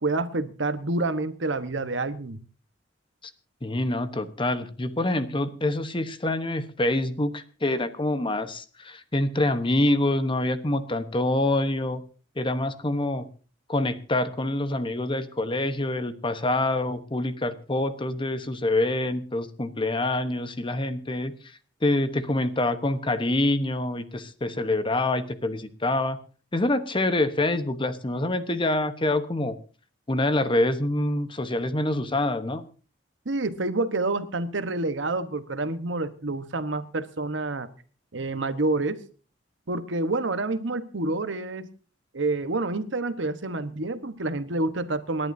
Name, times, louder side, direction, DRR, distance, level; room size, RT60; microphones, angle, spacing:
voice 1, 0.0-2.4 33.2-37.7 38.1-39.0 39.7-41.7 42.1-45.3, right 2 dB, 70° right, 11 dB, 1.2 m, -28 dB
voice 2, 3.6-12.0 12.4-13.3 13.7-26.2 26.5-29.6 30.1-32.7, left 1 dB, 25° left, 10 dB, 1.0 m, -26 dB
28.0 x 11.0 x 2.7 m, 0.37 s
head